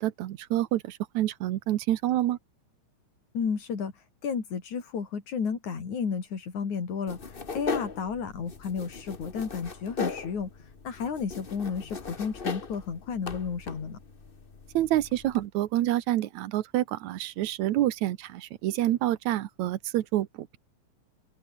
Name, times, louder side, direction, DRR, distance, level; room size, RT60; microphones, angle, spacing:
voice 1, 0.0-2.4 14.7-20.6, right 14 dB, 75° right, 2.3 m, -27 dB
voice 2, 3.3-3.9 4.2-10.5 10.8-14.0, left 6 dB, 75° left, 5.1 m, -32 dB
sound 1, 7.1-15.5, left 4 dB, 35° left, 0.8 m, -38 dB
omnidirectional pair, 3.4 m